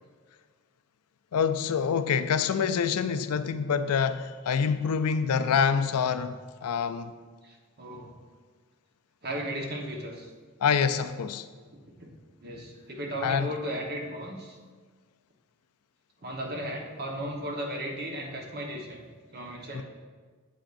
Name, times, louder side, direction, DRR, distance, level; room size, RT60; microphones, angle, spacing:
voice 1, 1.3-7.1 10.6-11.5 13.2-13.5 19.7-19.8, left 6 dB, 85° left, 11 dB, 0.4 m, -26 dB
voice 2, 7.4-8.1 9.2-10.3 12.0-14.6 16.2-19.0 19.3-19.8, equal, 45° right, 0 dB, 1.1 m, -36 dB
8.8 x 8.0 x 2.6 m, 1.5 s
head